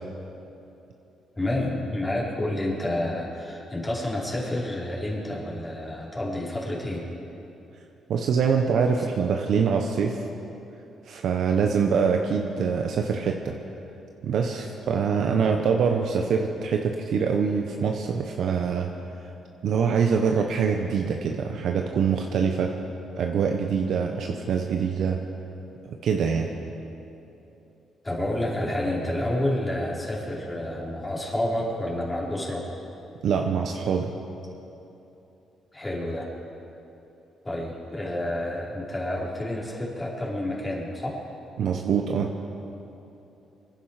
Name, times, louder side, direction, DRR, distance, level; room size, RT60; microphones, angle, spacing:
voice 1, 1.4-7.0 28.0-32.6 35.7-36.3 37.4-41.2, left 1 dB, 20° left, -5 dB, 4.5 m, -29 dB
voice 2, 8.1-10.2 11.1-13.6 14.2-18.9 19.6-22.7 23.2-25.2 25.9-26.5 33.2-34.1 41.6-42.3, right 6 dB, 70° right, 3 dB, 0.9 m, -24 dB
24.5 x 11.0 x 4.9 m, 2.9 s
cardioid pair, 90°, 0 cm